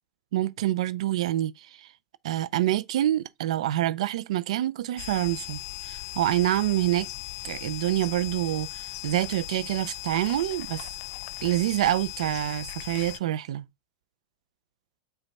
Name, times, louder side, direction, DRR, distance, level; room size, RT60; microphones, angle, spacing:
voice 1, 0.3-1.5 1.8-1.9 2.2-7.1 7.4-10.9 11.4-13.6, right 13 dB, 80° right, 0.4 m, -26 dB
sound 1, 5.0-13.2, left 17 dB, 65° left, 0.4 m, -38 dB
5.1 x 2.3 x 4.2 m
hypercardioid pair, 120°, 3 cm